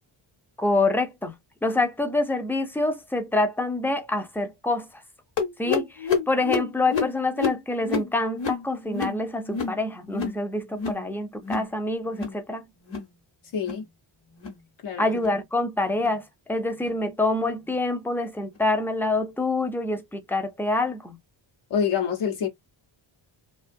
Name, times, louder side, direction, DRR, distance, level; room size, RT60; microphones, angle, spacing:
voice 1, 0.6-1.3 1.6-4.9 5.6-12.6 15.0-21.2, left 2 dB, 5° left, 0.3 m, -26 dB
sound 1, 5.4-10.4 10.7-11.1 11.3-11.7 12.0-12.4 12.8-13.1 13.5-13.9 14.3-14.6 15.1-15.4 15.9-16.2 16.8-17.0 17.7-17.8 18.5-18.6, left 5 dB, 60° left, 1.0 m, -30 dB
voice 2, 13.5-13.9 14.8-15.1 21.7-22.5, left 7 dB, 85° left, 0.9 m, -26 dB
2.4 x 2.3 x 2.5 m
wide cardioid pair, 160°, 50 cm